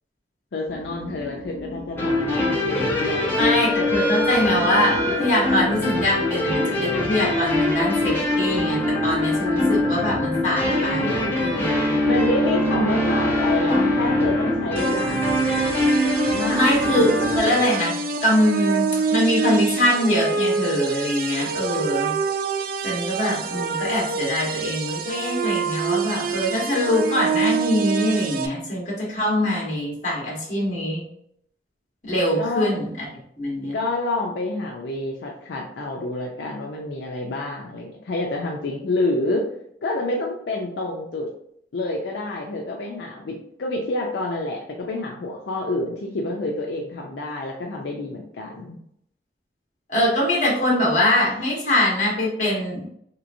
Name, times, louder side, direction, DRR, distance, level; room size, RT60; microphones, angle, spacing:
voice 1, 0.5-3.7 12.1-15.4 16.3-17.1 32.4-32.7 33.7-39.5 39.8-41.3 41.7-48.8, left 2 dB, 80° left, -1 dB, 0.5 m, -28 dB
sound 1, 0.7-17.4, left 2 dB, 60° left, 1.3 m, -38 dB
sound 2, 2.0-17.6, left 1 dB, 15° left, 0.9 m, -23 dB
voice 2, 3.4-12.0 16.5-17.9 18.2-22.2 22.8-31.0 32.0-33.0 33.4-33.7 49.9-52.8, left 1 dB, 45° left, -4 dB, 1.3 m, -23 dB
sound 3, 14.8-28.5, right 5 dB, 55° right, 0.3 m, -26 dB
3.3 x 3.0 x 2.5 m, 0.70 s
head